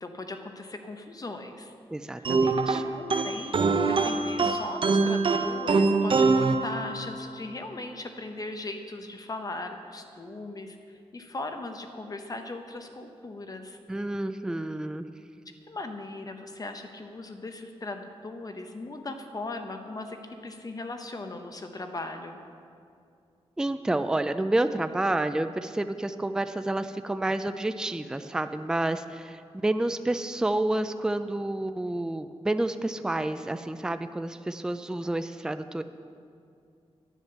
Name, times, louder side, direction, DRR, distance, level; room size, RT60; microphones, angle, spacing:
voice 1, 0.0-1.7 2.2-2.3 2.9-13.8 15.7-22.4, left 2 dB, 35° left, 6 dB, 0.9 m, -38 dB
voice 2, 1.9-2.8 13.9-15.1 23.6-35.8, right 1 dB, 5° right, 10 dB, 0.4 m, -29 dB
sound 1, 2.2-7.3, right 4 dB, 50° right, 0.7 m, -24 dB
11.0 x 9.9 x 6.8 m, 2.4 s
wide cardioid pair, 140°, 11 cm